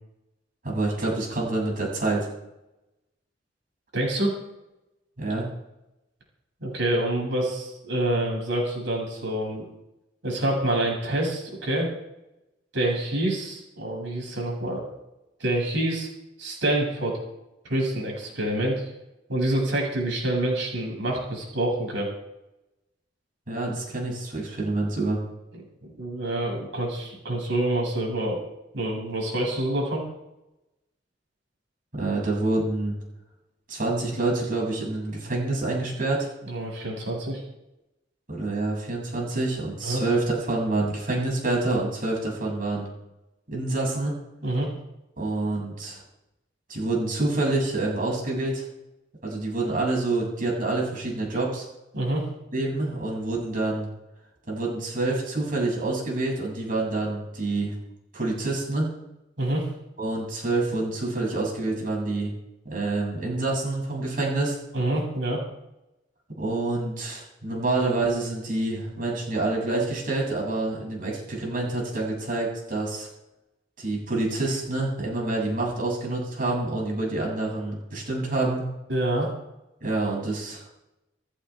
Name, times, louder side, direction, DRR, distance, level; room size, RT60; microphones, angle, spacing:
voice 1, 0.6-2.3 5.2-5.5 23.5-25.2 31.9-33.0 33.7-36.3 38.3-42.9 43.5-44.1 45.2-46.0 46.7-48.6 49.2-51.7 52.5-53.9 54.5-57.7 58.1-58.9 60.0-62.3 62.7-64.6 66.4-73.1 73.8-78.7 79.8-80.6, right 2 dB, 50° right, -2 dB, 7.3 m, -27 dB
voice 2, 3.9-4.4 6.6-9.7 10.2-11.9 12.7-14.8 15.4-16.1 16.4-17.2 17.7-18.8 19.3-22.1 25.5-28.4 28.7-30.0 36.5-37.4 39.8-40.0 44.4-44.7 51.9-52.2 59.4-59.7 64.7-65.4 78.9-79.3, right 1 dB, 70° right, -1 dB, 7.5 m, -27 dB
28.5 x 11.5 x 3.6 m, 0.93 s
head